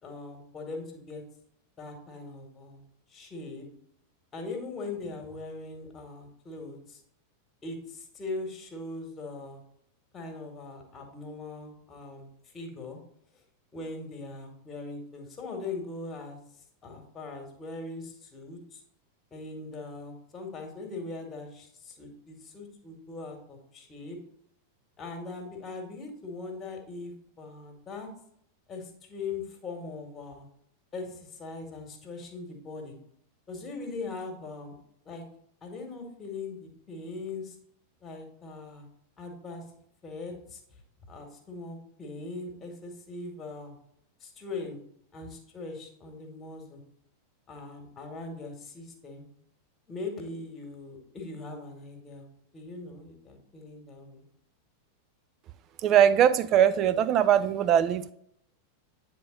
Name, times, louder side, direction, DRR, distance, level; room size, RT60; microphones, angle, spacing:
voice 1, 0.0-1.2 1.8-2.8 3.1-3.6 4.3-7.0 7.6-9.6 10.1-13.0 13.7-16.4 16.8-18.8 19.3-24.2 25.0-28.1 28.7-30.5 30.9-33.0 33.5-34.7 35.1-35.2 35.6-37.6 38.0-38.9 39.2-39.6 40.0-40.6 41.1-43.8 44.2-44.8 45.1-46.8 47.5-49.3 49.9-52.3 52.5-54.3, left 3 dB, 20° left, 3 dB, 1.8 m, -40 dB
voice 2, 55.8-58.1, right 9 dB, 35° right, 13 dB, 0.4 m, -21 dB
9.3 x 3.7 x 3.9 m, 0.70 s
figure-of-eight pair, 90°, 0 cm